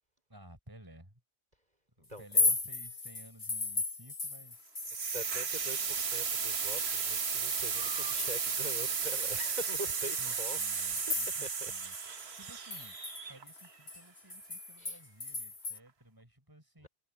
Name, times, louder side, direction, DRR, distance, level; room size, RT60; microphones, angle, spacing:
voice 1, 0.3-1.2 2.0-4.6 10.2-11.9 12.3-13.0 13.3-16.9, right 1 dB, 20° right, 4.9 m, -55 dB
voice 2, 2.1-2.5 5.0-11.7 12.0-12.4 14.8-15.0, right 1 dB, 40° right, 5.2 m, -45 dB
sound 1, 2.2-5.2 5.5-8.7 9.1-9.2 9.7-11.7 11.9-12.0 12.4-15.8, left 3 dB, 35° left, 1.2 m, -36 dB
sound 2, 4.8-13.7, right 6 dB, 70° right, 1.5 m, -34 dB
omnidirectional pair, 1.1 m